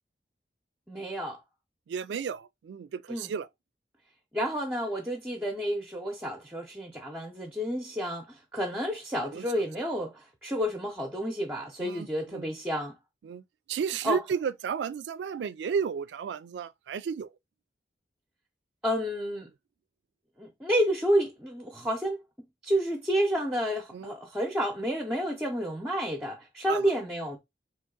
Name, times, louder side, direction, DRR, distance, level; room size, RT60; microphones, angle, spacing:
voice 1, 0.9-1.4 3.1-3.3 4.3-13.0 14.0-14.2 18.8-19.5 20.4-22.2 22.6-27.4, equal, 10° right, 0.6 m, -30 dB
voice 2, 1.9-3.5 9.3-9.5 11.8-12.5 13.2-13.4 13.7-17.3 23.9-24.1 26.7-27.0, right 6 dB, 85° right, 0.3 m, -33 dB
3.7 x 2.9 x 3.7 m
head